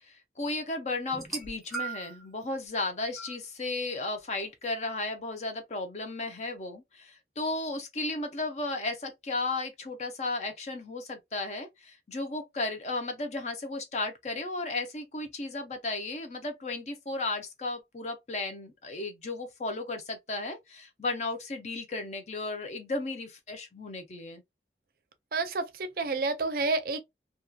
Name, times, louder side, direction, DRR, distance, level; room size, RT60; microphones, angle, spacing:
voice 1, 0.0-24.4, left 2 dB, 40° left, 0.5 m, -34 dB
sound 1, 1.1-2.3 3.2-3.4 4.4-4.5, right 5 dB, ahead, 0.8 m, -37 dB
voice 2, 25.3-27.0, right 3 dB, 55° right, 0.5 m, -29 dB
2.7 x 2.3 x 2.2 m
head